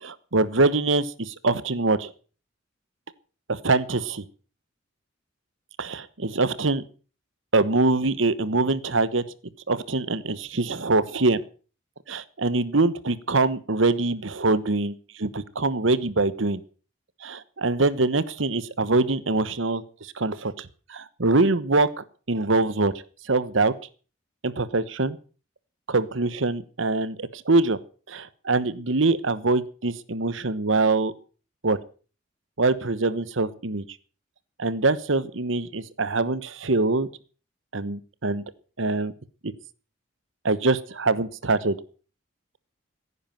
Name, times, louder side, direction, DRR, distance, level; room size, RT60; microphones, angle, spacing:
voice 1, 0.0-2.1 3.5-4.2 5.8-6.8 7.5-9.2 9.7-11.4 12.1-16.6 17.2-22.9 23.2-23.7 24.4-25.2 25.9-27.8 28.1-31.1 31.6-31.8 32.6-33.8 34.6-37.1 37.7-38.4 38.8-39.1 39.4-39.5 40.4-41.7, right 3 dB, 75° right, 16 dB, 1.2 m, -24 dB
16.5 x 9.8 x 7.5 m, 0.39 s
head